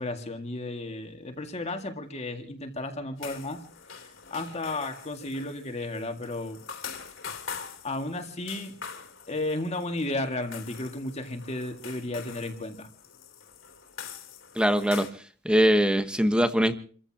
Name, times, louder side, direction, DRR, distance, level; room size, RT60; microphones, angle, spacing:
voice 1, 0.0-3.6 4.0-6.6 7.8-8.8 9.3-12.9, left 2 dB, 30° left, 4 dB, 2.1 m, -33 dB
sound 1, 3.2-15.1, left 6 dB, 70° left, 3.4 m, -44 dB
voice 2, 14.5-15.1 15.4-16.7, equal, 5° right, 9 dB, 1.3 m, -22 dB
29.0 x 15.0 x 2.9 m, 0.43 s
head